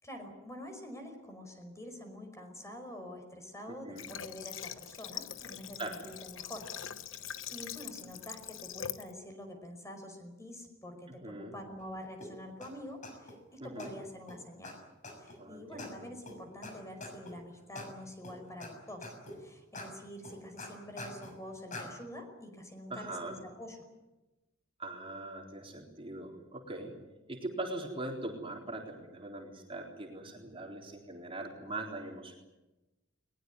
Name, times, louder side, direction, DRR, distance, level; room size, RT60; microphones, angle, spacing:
voice 1, 0.0-6.7 7.0-14.7 15.2-23.8, left 1 dB, 15° left, 5 dB, 5.3 m, -47 dB
voice 2, 3.7-4.1 5.8-6.0 11.2-11.5 13.6-13.9 15.4-15.9 22.9-23.4 24.8-26.9 27.3-32.4, right 2 dB, 30° right, 0 dB, 3.8 m, -41 dB
Water / Water tap faucet, 4.0-9.1, left 10 dB, 75° left, 1.0 m, -43 dB
sound 1, 12.2-12.3 12.6-12.7 13.0-13.4 13.8-13.9 14.3-14.4 14.6-14.7 15.0-15.4 15.8-15.9 16.3-16.4 16.6-16.7 17.0-17.3 17.8-17.9 18.2-18.7 19.0-19.4 19.7-19.9 20.2-21.3 21.7-21.9, left 2 dB, 40° left, 6.6 m, -44 dB
21.5 x 20.5 x 9.7 m, 1.0 s
head